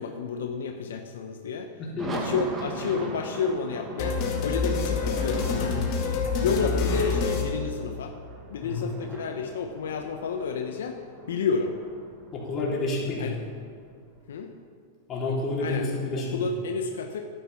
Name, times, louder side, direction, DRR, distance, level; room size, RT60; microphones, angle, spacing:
voice 1, 0.0-1.7 2.1-5.8 6.4-8.1 8.5-11.0 11.3-11.7 13.2-13.4 14.3-14.5 15.6-17.2, left 5 dB, 85° left, 5 dB, 0.8 m, -30 dB
sound 1, 2.0-14.2, right 2 dB, 25° right, 1.9 m, -40 dB
sound 2, 4.0-8.3, left 4 dB, 50° left, 2.1 m, -28 dB
voice 2, 12.3-13.3 15.1-16.4, left 2 dB, 30° left, -4 dB, 3.7 m, -29 dB
11.0 x 10.0 x 5.9 m, 2.2 s
hypercardioid pair, 120°, 0 cm